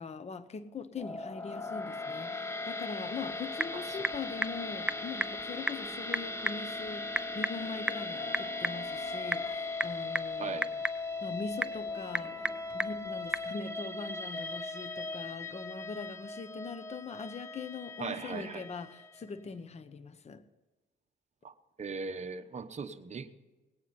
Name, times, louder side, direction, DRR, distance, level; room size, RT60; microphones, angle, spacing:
voice 1, 0.0-10.8 11.2-20.4, left 4 dB, 35° left, 0.8 m, -42 dB
sound 1, 0.9-19.2, left 3 dB, 15° left, 1.0 m, -39 dB
Typing / Telephone, 3.0-13.5, right 1 dB, 5° right, 0.4 m, -38 dB
sound 2, 7.5-9.7, left 3 dB, 80° left, 1.2 m, -44 dB
voice 2, 10.4-10.7 18.0-18.6 21.4-21.5 21.8-23.4, right 5 dB, 35° right, 1.0 m, -39 dB
18.5 x 9.3 x 4.1 m
cardioid pair, 90°, 20 cm